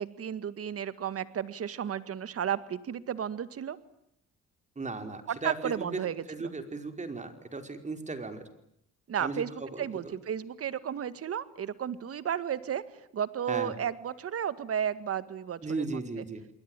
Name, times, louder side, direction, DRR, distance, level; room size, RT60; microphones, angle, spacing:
voice 1, 0.0-3.8 5.3-6.5 9.1-16.0, right 9 dB, 50° right, 14 dB, 2.0 m, -33 dB
voice 2, 4.7-6.0 6.3-8.4 9.2-10.1 13.5-13.7 15.6-16.4, right 3 dB, 25° right, 7 dB, 4.9 m, -36 dB
29.0 x 21.5 x 9.1 m, 0.74 s
cardioid pair, 95°, 29 cm